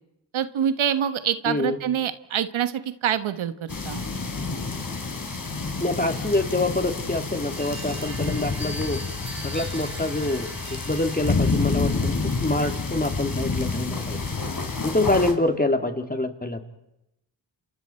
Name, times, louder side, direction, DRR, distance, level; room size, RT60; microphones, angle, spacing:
voice 1, 0.3-4.0, right 9 dB, 80° right, 11 dB, 1.3 m, -26 dB
voice 2, 1.5-1.8 5.8-9.0 9.4-14.2 14.8-16.6, left 2 dB, 20° left, 5 dB, 2.6 m, -26 dB
sound 1, 3.7-15.3, left 3 dB, 45° left, 3.9 m, -29 dB
sound 2, 7.5-15.2, right 2 dB, 35° right, 5.4 m, -43 dB
29.0 x 27.5 x 4.5 m, 0.85 s
cardioid pair, 60°, 47 cm